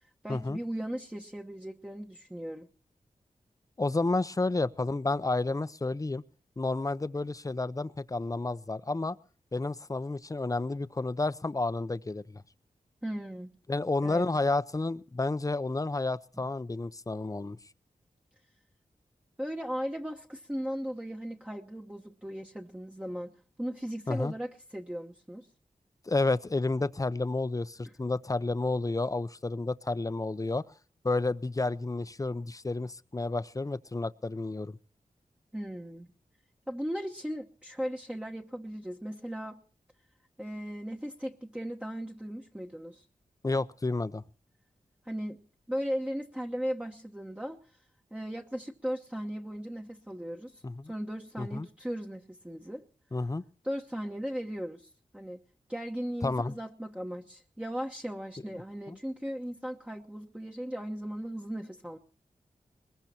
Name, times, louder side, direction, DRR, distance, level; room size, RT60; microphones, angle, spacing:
voice 1, 0.2-2.7 13.0-13.5 14.0-14.3 19.4-25.5 35.5-36.1 36.7-39.6 40.4-43.0 45.0-45.4 45.7-47.6 48.1-52.8 53.6-55.4 55.7-62.0, equal, 10° right, 1.1 m, -37 dB
voice 2, 3.8-6.2 6.6-9.2 9.5-12.4 13.7-17.6 24.1-24.3 26.1-30.6 31.0-34.8 43.4-44.2 50.6-50.9 51.4-51.7 53.1-53.4 56.2-56.5 58.9-59.0, left 2 dB, 25° left, 0.7 m, -31 dB
21.5 x 21.0 x 2.9 m
wide cardioid pair, 75°, 14 cm